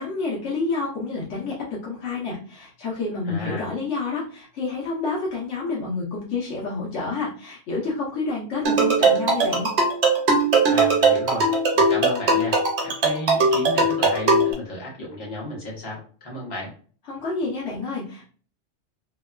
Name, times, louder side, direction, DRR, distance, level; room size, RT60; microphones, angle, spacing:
voice 1, 0.0-9.7 17.1-18.2, left 3 dB, 80° left, -4 dB, 1.1 m, -29 dB
voice 2, 3.3-3.7 10.7-11.5 11.7-16.7, left 1 dB, 55° left, -4 dB, 1.2 m, -33 dB
sound 1, 8.6-14.5, right 3 dB, 65° right, 0.9 m, -19 dB
2.8 x 2.2 x 2.3 m, 0.41 s
omnidirectional pair, 1.2 m